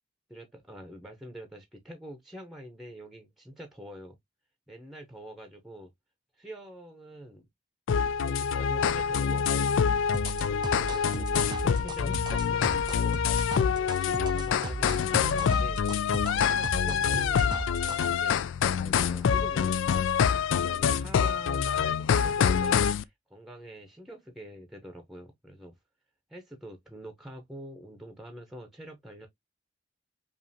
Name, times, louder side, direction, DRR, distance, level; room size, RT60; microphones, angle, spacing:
voice 1, 0.3-4.1 4.7-5.9 6.4-7.5 8.2-9.8 10.6-15.8 16.3-18.4 18.8-20.0 20.4-25.8 26.3-29.3, equal, ahead, 0.7 m, -45 dB
sound 1, 7.9-23.0, left 7 dB, 80° left, 0.3 m, -26 dB
sound 2, 10.1-18.1, right 3 dB, 25° right, 0.3 m, -36 dB
5.3 x 2.5 x 2.7 m
head